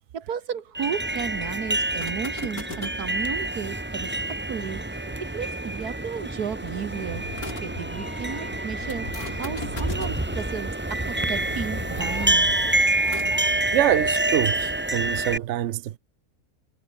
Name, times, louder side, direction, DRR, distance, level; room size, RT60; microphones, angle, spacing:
voice 1, 0.1-4.8 5.2-7.3 7.6-12.5, right 7 dB, 80° right, 2.0 m, -34 dB
sound 1, 0.7-15.4, right 2 dB, 10° right, 0.6 m, -27 dB
sound 2, 1.9-7.8 8.9-13.4, left 3 dB, 70° left, 5.0 m, -43 dB
Meow, 6.8-13.5, left 2 dB, 50° left, 6.2 m, -40 dB
voice 2, 13.7-16.0, right 13 dB, 60° right, 0.8 m, -25 dB
omnidirectional pair, 1.6 m